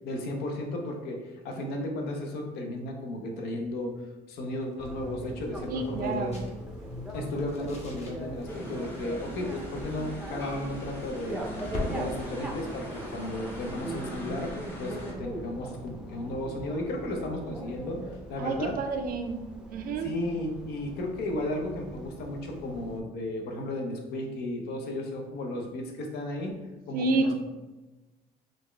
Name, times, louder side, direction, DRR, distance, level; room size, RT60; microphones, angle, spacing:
voice 1, 0.0-4.0 4.3-6.3 7.1-18.8 20.0-26.6 26.9-27.3, left 1 dB, 75° left, 2 dB, 0.7 m, -34 dB
sound 1, 4.5-15.0, left 2 dB, 40° left, 0.9 m, -45 dB
Bicycle, 4.8-23.0, right 1 dB, 5° right, 0.5 m, -40 dB
voice 2, 5.7-6.4 18.4-19.4 19.7-20.1 26.9-27.3, right 3 dB, 60° right, 6 dB, 0.4 m, -29 dB
sound 2, 8.4-15.1, equal, 15° left, 1.0 m, -43 dB
4.1 x 2.4 x 3.2 m, 1.1 s
cardioid pair, 110°, 17 cm